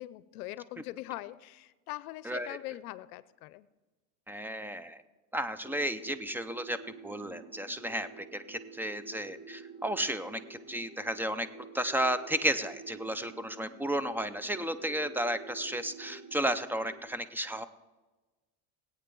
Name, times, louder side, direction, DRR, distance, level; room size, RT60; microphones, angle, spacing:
voice 1, 0.0-3.7, left 16 dB, 80° left, 18 dB, 0.6 m, -42 dB
voice 2, 2.3-2.6 4.3-5.0 5.3-6.8 7.0-11.5 11.7-17.7, right 1 dB, 5° right, 12 dB, 0.4 m, -33 dB
sound 1, 5.6-17.0, right 3 dB, 40° right, 4.4 m, -49 dB
20.5 x 8.7 x 3.8 m, 1.2 s
supercardioid pair, 100°, 44 cm